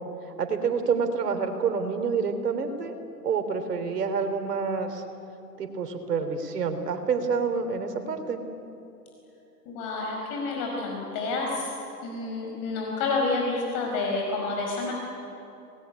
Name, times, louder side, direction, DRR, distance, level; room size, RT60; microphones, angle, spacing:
voice 1, 0.4-2.9 3.2-5.0 5.6-8.4, right 5 dB, 75° right, 7 dB, 3.4 m, -28 dB
voice 2, 9.6-11.7 12.0-14.9, left 3 dB, 40° left, 0 dB, 5.1 m, -29 dB
26.5 x 19.5 x 9.7 m, 3.0 s
hypercardioid pair, 115°, 48 cm